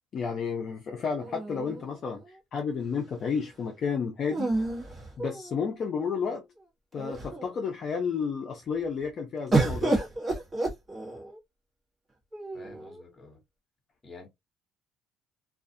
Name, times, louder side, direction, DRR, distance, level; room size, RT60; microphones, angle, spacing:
voice 1, 0.1-4.5 5.2-6.4 6.9-10.0, left 6 dB, 45° left, 0.5 m, -31 dB
sound 1, 1.2-2.3 4.3-5.8 6.6-6.7 7.0-7.5 9.5-11.4 12.3-13.0, right 2 dB, 25° right, 1.2 m, -30 dB
voice 2, 12.5-13.4 14.0-14.3, left 3 dB, 20° left, 1.1 m, -49 dB
2.4 x 2.3 x 2.5 m
cardioid pair, 120°, 0 cm